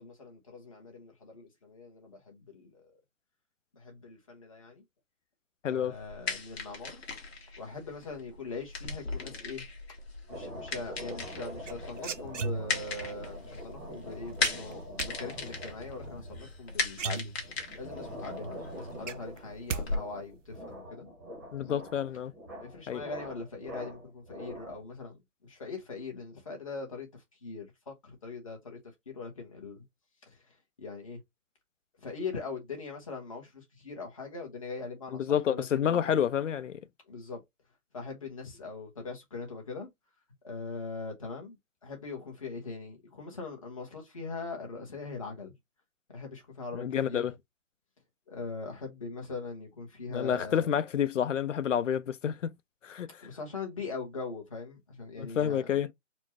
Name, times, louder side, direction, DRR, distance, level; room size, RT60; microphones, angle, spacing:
voice 1, 0.0-2.8 3.7-4.8 5.7-7.0 7.6-9.6 10.3-17.3 17.8-21.1 21.6-21.9 22.6-28.8 29.1-29.8 30.3-31.2 32.0-36.2 37.1-37.4 37.9-39.9 40.4-41.6 41.8-45.5 46.1-47.3 48.3-50.7 53.2-55.8, left 4 dB, 25° left, 0.9 m, -41 dB
voice 2, 5.6-5.9 21.5-22.3 22.9-23.0 35.1-36.8 46.7-47.3 50.1-52.5 52.8-53.1 55.2-55.9, left 9 dB, 70° left, 0.6 m, -29 dB
sound 1, 5.9-20.0, left 4 dB, 50° left, 1.4 m, -38 dB
sound 2, 10.3-25.0, equal, 15° right, 0.8 m, -45 dB
sound 3, 11.6-13.0 14.4-15.1 16.5-16.6 16.9-17.8 18.2-18.3 18.6-19.8 20.1-20.6, right 5 dB, 70° right, 0.6 m, -36 dB
4.3 x 2.1 x 2.8 m
hypercardioid pair, 170°, 40 cm